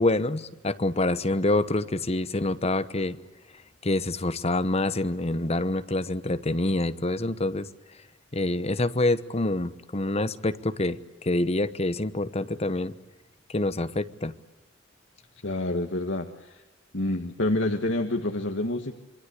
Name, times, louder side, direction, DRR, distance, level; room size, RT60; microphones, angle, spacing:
voice 1, 0.0-3.2 3.8-7.7 8.3-12.9 13.5-14.3, left 2 dB, 35° left, 12 dB, 1.0 m, -26 dB
voice 2, 15.4-16.6 16.9-18.9, left 1 dB, 70° left, 3 dB, 1.7 m, -28 dB
27.0 x 24.0 x 8.3 m, 1.1 s
head